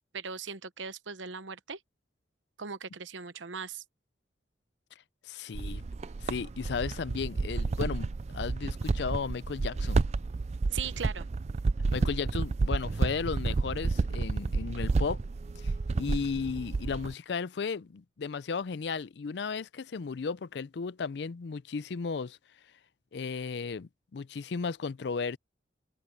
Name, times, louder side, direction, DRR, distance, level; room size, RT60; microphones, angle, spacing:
voice 1, 0.1-1.8 2.6-3.8 10.7-11.3, right 6 dB, 85° right, 0.9 m, -39 dB
voice 2, 5.2-5.8 6.2-8.1 8.3-10.0 11.9-15.2 15.6-22.4 23.1-25.4, left 5 dB, 65° left, 0.4 m, -35 dB
sound 1, 5.5-17.1, right 3 dB, 35° right, 0.3 m, -31 dB
open air
head